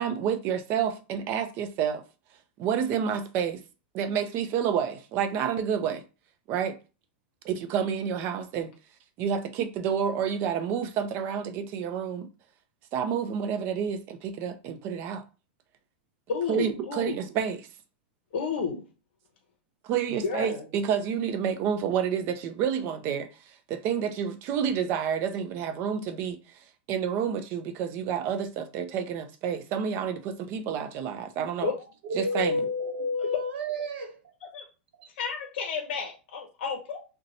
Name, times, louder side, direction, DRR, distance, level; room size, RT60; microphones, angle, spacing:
voice 1, 0.0-2.0 2.6-3.6 3.9-6.0 6.5-6.8 7.4-8.7 9.2-12.3 12.9-15.2 16.5-17.7 19.8-23.3 23.7-26.4 26.9-31.7 32.1-32.6, right 8 dB, 40° right, 0.5 m, -29 dB
voice 2, 16.3-17.2 18.3-18.8 20.1-20.6 31.6-31.8 34.5-34.6 35.2-37.0, left 5 dB, 70° left, 0.7 m, -31 dB
voice 3, 32.0-34.3 35.0-35.1, left 1 dB, 75° right, 0.8 m, -30 dB
2.7 x 2.2 x 4.0 m
supercardioid pair, 145°, 6 cm